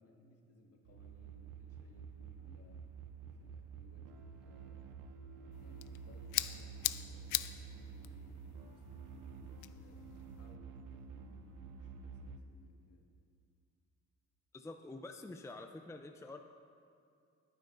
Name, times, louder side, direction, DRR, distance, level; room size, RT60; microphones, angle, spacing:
voice 1, 0.0-2.9 3.2-5.0 5.6-10.0 10.3-13.1, left 3 dB, 50° left, 0 dB, 1.8 m, -63 dB
sound 1, 0.9-12.4, right 6 dB, 90° right, 0.7 m, -50 dB
sound 2, 5.5-10.5, left 15 dB, 90° left, 0.5 m, -42 dB
voice 2, 14.5-16.4, left 2 dB, 10° left, 4 dB, 0.5 m, -47 dB
20.0 x 9.4 x 2.6 m, 2.4 s
cardioid pair, 90°, 30 cm